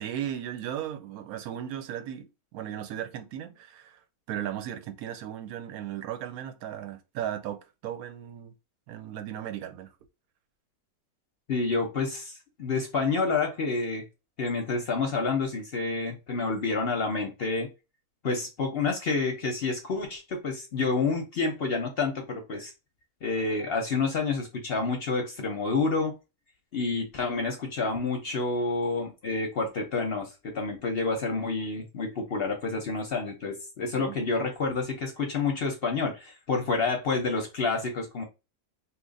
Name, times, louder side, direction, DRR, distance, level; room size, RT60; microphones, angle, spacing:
voice 1, 0.0-4.0 4.3-8.5 8.9-9.9 33.9-34.2, right 10 dB, 80° right, 1.1 m, -36 dB
voice 2, 11.5-12.3 12.6-14.0 14.4-17.7 18.2-22.7 23.2-26.1 26.7-38.2, left 4 dB, 55° left, 0.7 m, -29 dB
2.8 x 2.4 x 3.8 m
omnidirectional pair, 1.5 m